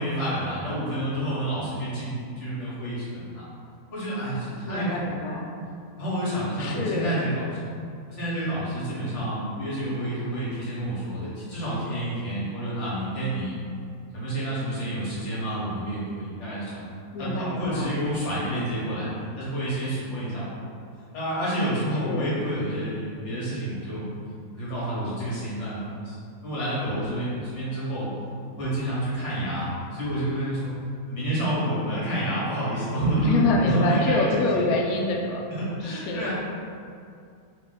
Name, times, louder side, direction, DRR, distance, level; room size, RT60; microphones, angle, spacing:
voice 1, 0.0-3.5 3.9-5.1 6.0-7.6 8.1-13.6 14.1-16.8 17.2-19.1 19.4-20.6 21.1-24.0 24.5-25.8 26.0-26.1 26.4-28.1 28.5-30.7 31.1-34.7 35.5-36.3, right 1 dB, 55° left, -9 dB, 1.5 m, -29 dB
voice 2, 4.6-5.5 6.6-7.2 17.1-18.0 22.0-22.3 33.2-35.4 35.8-36.2, left 2 dB, 80° left, 0 dB, 1.0 m, -26 dB
2.9 x 2.9 x 3.8 m, 2.4 s
omnidirectional pair, 1.6 m